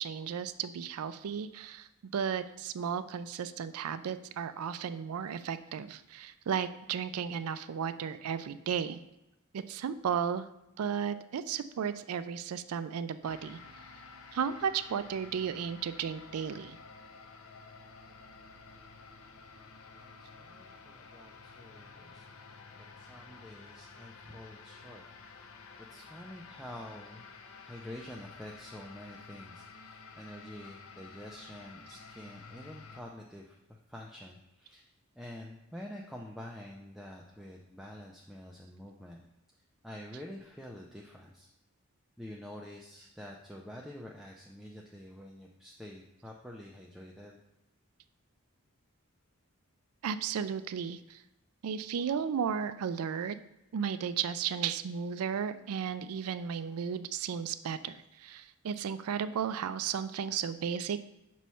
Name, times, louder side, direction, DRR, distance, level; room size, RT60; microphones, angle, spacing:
voice 1, 0.0-9.0 9.5-10.5 10.8-13.6 14.3-16.8 50.0-51.2 51.6-53.4 53.7-61.0, right 7 dB, 85° right, 13 dB, 0.4 m, -34 dB
sound 1, 13.2-33.0, left 4 dB, 70° left, 0.6 m, -51 dB
voice 2, 20.0-22.3 23.0-25.0 25.9-27.3 27.7-34.9 35.2-39.2 39.8-41.5 42.2-47.4, left 1 dB, ahead, -2 dB, 0.4 m, -47 dB
5.5 x 3.1 x 5.5 m, 0.90 s
head